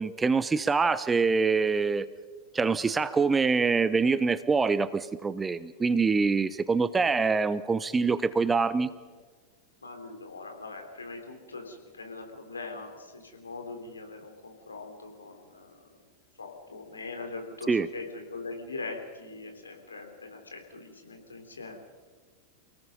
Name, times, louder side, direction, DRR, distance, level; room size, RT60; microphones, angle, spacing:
voice 1, 0.0-2.1 2.5-8.9 17.7-17.9, right 4 dB, 15° right, 15 dB, 0.8 m, -25 dB
voice 2, 9.8-16.0 16.4-21.8, left 3 dB, 75° left, 4 dB, 3.6 m, -41 dB
29.0 x 18.0 x 5.4 m, 1.4 s
figure-of-eight pair, 90°, 0 cm